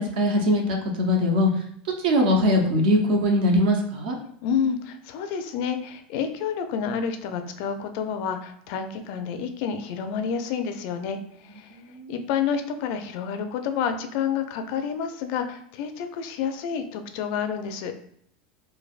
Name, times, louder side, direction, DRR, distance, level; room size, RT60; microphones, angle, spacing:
voice 1, 0.0-1.5 2.0-4.2 11.7-12.1, left 1 dB, 75° right, 2 dB, 0.7 m, -21 dB
voice 2, 4.4-17.9, left 7 dB, 60° left, 7 dB, 0.4 m, -29 dB
3.2 x 2.1 x 2.4 m, 0.66 s
supercardioid pair, 125°, 5 cm